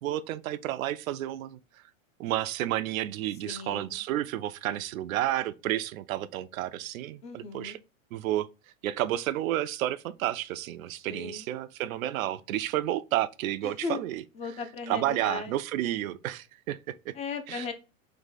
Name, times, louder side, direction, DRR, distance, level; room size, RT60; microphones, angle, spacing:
voice 1, 0.0-1.6 2.2-7.8 8.1-8.5 8.8-14.2 14.9-17.1 17.5-17.7, right 13 dB, 85° right, 0.5 m, -31 dB
voice 2, 3.4-4.0 7.2-7.8 11.0-11.5 13.6-14.0 14.4-15.5 17.1-17.7, left 5 dB, 15° left, 0.4 m, -37 dB
3.8 x 2.6 x 3.8 m
hypercardioid pair, 125°, 40 cm